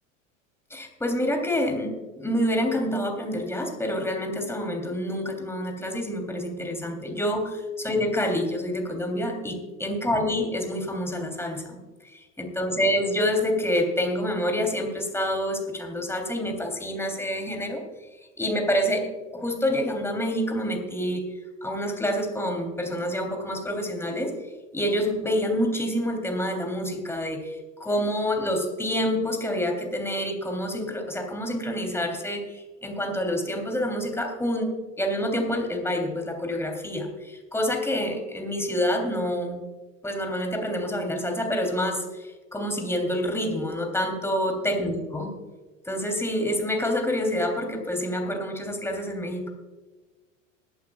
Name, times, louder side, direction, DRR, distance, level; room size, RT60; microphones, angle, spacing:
voice 1, 0.7-11.8 12.4-17.8 18.2-21.3 21.6-24.3 24.7-34.7 35.0-39.7 40.0-45.3 45.9-49.5, equal, 5° left, 3 dB, 3.2 m, -27 dB
21.5 x 11.5 x 2.4 m, 1.2 s
hypercardioid pair, 80°, 39 cm